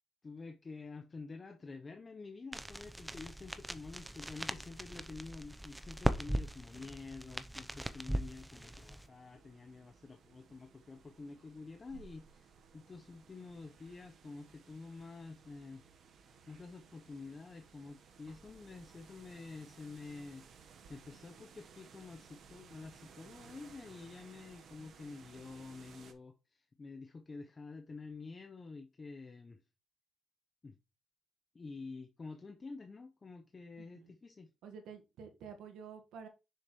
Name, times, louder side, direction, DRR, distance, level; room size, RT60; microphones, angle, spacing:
voice 1, 0.2-15.8 16.2-29.6 30.6-30.8 31.5-34.5, left 3 dB, 30° left, 0.8 m, -49 dB
sound 1, 2.5-9.1, right 1 dB, 5° right, 0.7 m, -39 dB
sound 2, 8.6-26.1, right 6 dB, 65° right, 1.2 m, -59 dB
voice 2, 33.8-34.1 34.6-36.3, right 6 dB, 85° right, 1.5 m, -50 dB
6.5 x 6.4 x 3.1 m
cardioid pair, 90°, 0 cm